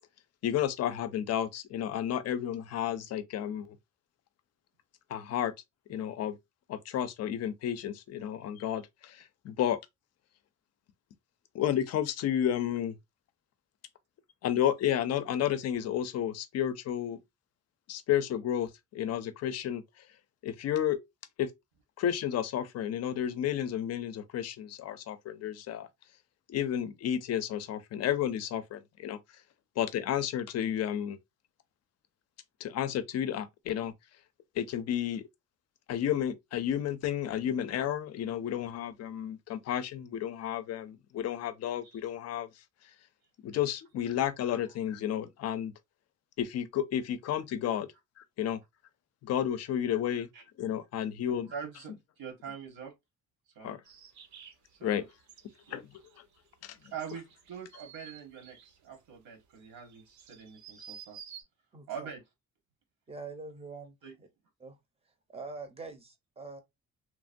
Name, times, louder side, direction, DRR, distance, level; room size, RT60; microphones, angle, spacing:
voice 1, 0.4-3.8 5.1-5.5 5.9-6.4 6.7-9.8 11.5-13.0 14.4-17.2 17.9-19.8 20.4-21.0 21.4-21.5 22.0-25.9 26.5-29.2 29.8-31.2 32.6-33.9 34.6-35.2 35.9-42.5 43.4-45.7 46.4-47.9 48.4-48.6 49.2-50.3 50.6-51.5 53.6-53.8 54.8-55.0 55.7-55.8 56.6-56.8, left 10 dB, 50° left, 0.4 m, -31 dB
voice 2, 51.3-52.9 53.5-53.8 54.8-55.1 55.7-55.8 56.8-61.2 61.9-62.2 64.0-64.1, right 7 dB, 85° right, 1.3 m, -44 dB
sound 1, 53.8-61.4, right 9 dB, 60° right, 0.6 m, -52 dB
voice 3, 61.7-62.1 63.1-64.3 64.6-64.8 65.3-66.6, right 3 dB, 20° right, 0.6 m, -44 dB
3.0 x 2.1 x 2.5 m
cardioid pair, 155°, 33 cm